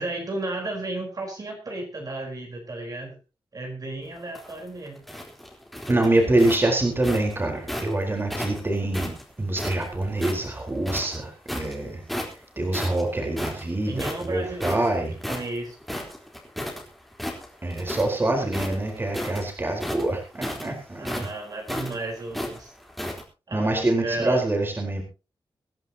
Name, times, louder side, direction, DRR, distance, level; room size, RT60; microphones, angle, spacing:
voice 1, 0.0-3.2 3.5-5.0 13.9-15.8 21.0-22.7 23.5-24.4, right 2 dB, 45° right, 1 dB, 4.3 m, -33 dB
sound 1, 4.2-7.9 8.3-10.5 10.8-11.7 12.1-12.4 12.7-16.8 17.1-18.2 18.5-23.2, equal, ahead, 3.9 m, -33 dB
voice 2, 5.9-9.1 9.4-12.0 12.6-15.1 17.6-21.3 23.5-25.0, right 2 dB, 25° right, 2 dB, 4.3 m, -25 dB
24.5 x 11.0 x 2.9 m, 0.31 s
wide cardioid pair, 135°, 9 cm